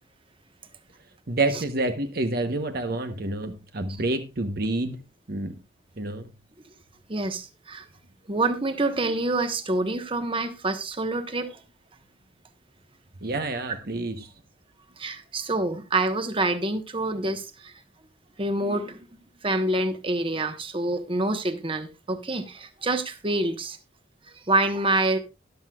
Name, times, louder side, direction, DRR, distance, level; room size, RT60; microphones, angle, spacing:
voice 1, 1.3-5.0 5.3-5.5 6.0-6.3 13.2-14.3, right 2 dB, 55° right, 1.0 m, -28 dB
voice 2, 7.1-7.9 8.3-11.6 15.0-17.7 18.4-19.0 19.4-23.8 24.3-25.2, right 2 dB, 30° right, 1.2 m, -27 dB
13.5 x 11.0 x 2.4 m
head